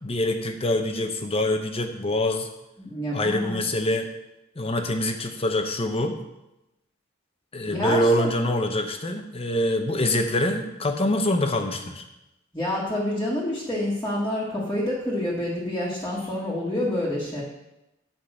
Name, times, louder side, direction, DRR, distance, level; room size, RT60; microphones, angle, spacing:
voice 1, 0.0-2.5 3.1-4.1 4.6-6.2 7.5-12.0, left 1 dB, 30° left, 5 dB, 0.9 m, -25 dB
voice 2, 2.8-3.6 7.7-8.3 12.5-17.4, left 1 dB, 15° left, -7 dB, 1.7 m, -28 dB
8.7 x 5.1 x 6.3 m, 0.92 s
head